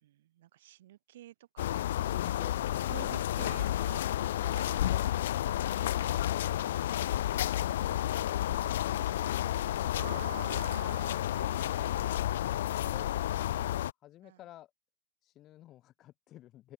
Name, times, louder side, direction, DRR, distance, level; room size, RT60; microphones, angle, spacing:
voice 1, 0.0-1.8 2.9-4.1 4.5-4.8 9.0-9.6 10.0-12.4 14.2-14.4, right 14 dB, 60° right, 2.1 m, -48 dB
sound 1, 1.6-13.9, left 12 dB, 65° left, 1.0 m, -31 dB
voice 2, 2.0-2.9 4.4-4.6 9.9-10.5 12.8-14.7 15.2-16.7, left 14 dB, 20° left, 2.0 m, -52 dB
open air
supercardioid pair, 175°, 0 cm